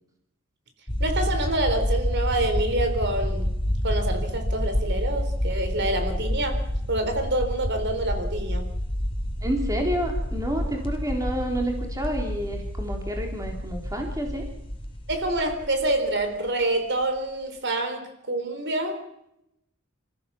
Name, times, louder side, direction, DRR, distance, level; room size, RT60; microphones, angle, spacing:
sound 1, 0.9-16.5, equal, 25° left, 2.5 m, -28 dB
voice 1, 1.0-3.5 3.8-6.6 6.9-8.7 15.1-19.0, right 1 dB, 55° right, 7 dB, 3.7 m, -27 dB
voice 2, 9.4-14.5, right 1 dB, 15° right, 2 dB, 3.7 m, -29 dB
27.5 x 15.5 x 7.2 m, 0.80 s
head